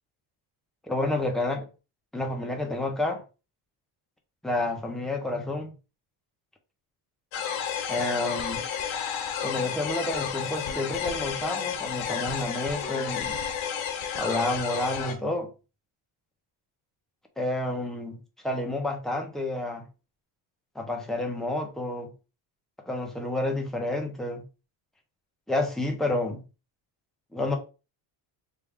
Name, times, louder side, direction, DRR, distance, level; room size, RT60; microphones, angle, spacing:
voice 1, 0.9-1.7 2.1-3.2 4.4-5.7 7.9-8.6 9.4-13.4 14.1-15.5 17.4-18.2 18.4-19.9 20.7-22.1 22.9-24.4 25.5-26.4 27.3-27.6, left 2 dB, ahead, 0.8 m, -29 dB
sound 1, 7.3-15.1, left 8 dB, 80° left, 1.1 m, -31 dB
3.5 x 2.7 x 3.6 m
cardioid pair, 130°, 48 cm